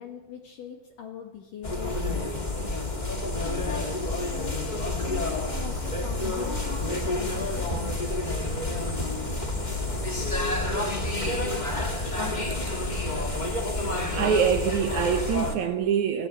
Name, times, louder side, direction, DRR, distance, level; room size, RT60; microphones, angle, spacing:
voice 1, 0.0-3.0 3.2-4.7 5.1-8.0, left 7 dB, 60° left, 2.9 m, -41 dB
sound 1, 1.6-15.5, left 2 dB, 20° left, 1.0 m, -29 dB
voice 2, 14.1-16.3, right 8 dB, 75° right, 1.7 m, -25 dB
23.0 x 17.0 x 7.7 m
omnidirectional pair, 4.8 m